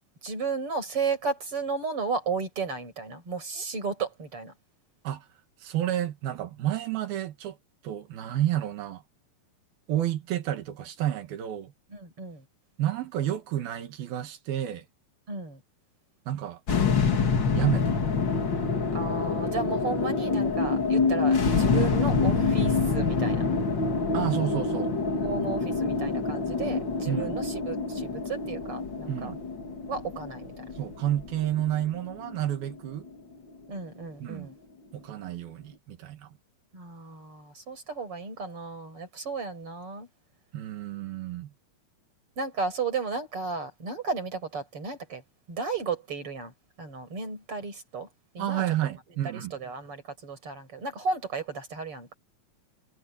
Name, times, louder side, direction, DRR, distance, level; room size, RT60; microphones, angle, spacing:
voice 1, 0.2-4.5 11.9-12.4 15.3-15.6 18.9-23.5 25.2-29.3 29.9-30.5 33.7-34.6 36.7-40.1 42.4-45.2 45.5-46.5 46.8-48.1 48.3-48.6 49.3-52.2, right 4 dB, 35° right, 6.9 m, -34 dB
voice 2, 5.6-7.6 7.8-9.0 9.9-11.7 12.8-14.9 16.3-16.6 17.6-18.0 24.1-24.9 27.1-27.4 29.1-29.4 30.7-33.1 34.2-34.5 34.9-36.4 40.5-41.5 48.4-49.5, right 12 dB, 85° right, 3.6 m, -30 dB
sound 1, 16.7-33.1, left 4 dB, 40° left, 2.3 m, -26 dB
omnidirectional pair, 4.1 m